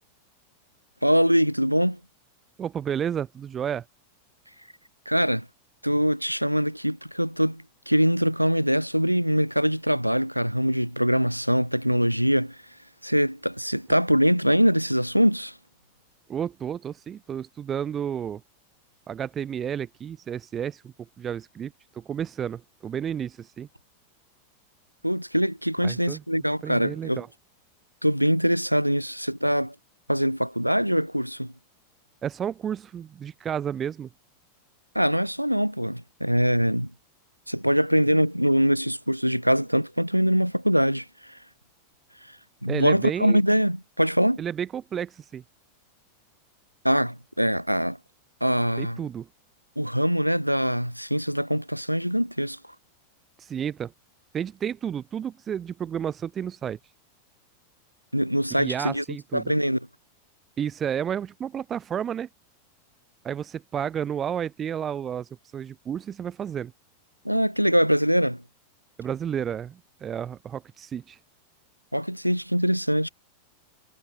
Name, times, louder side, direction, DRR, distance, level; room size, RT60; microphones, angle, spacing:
voice 1, 1.0-2.0 5.1-5.5 5.8-12.6 13.0-15.5 25.0-27.2 28.0-29.7 30.1-31.5 35.0-36.9 37.5-41.4 42.6-44.4 46.8-48.0 48.4-49.0 49.8-52.6 58.1-59.0 59.3-59.9 67.3-68.4 71.9-73.1, equal, 90° right, 7.0 m, -23 dB
voice 2, 2.6-3.8 16.3-18.4 19.1-23.7 25.8-26.2 26.6-27.3 32.2-34.1 42.7-43.4 44.4-45.4 48.8-49.3 53.4-53.9 54.3-56.8 58.5-59.5 60.6-62.3 63.2-66.7 69.0-71.2, right 8 dB, 25° right, 2.9 m, -31 dB
figure-of-eight pair, 90°, 0 cm